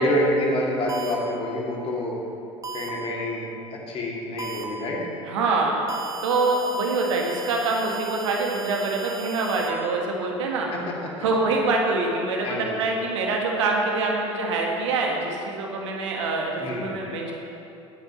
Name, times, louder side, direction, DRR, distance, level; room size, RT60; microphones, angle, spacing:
voice 1, 0.0-2.2 2.7-5.0 10.7-11.1 12.4-12.8 16.6-16.9, left 1 dB, 35° left, -3 dB, 2.6 m, -27 dB
sound 1, 0.9-1.1 2.6-2.9 4.4-4.6 5.9-9.7, right 4 dB, 20° right, 1.1 m, -37 dB
voice 2, 5.3-5.8 6.2-10.7 11.2-17.3, right 3 dB, 65° right, 0 dB, 1.6 m, -25 dB
17.5 x 9.1 x 3.1 m, 2.8 s
figure-of-eight pair, 70°, 16 cm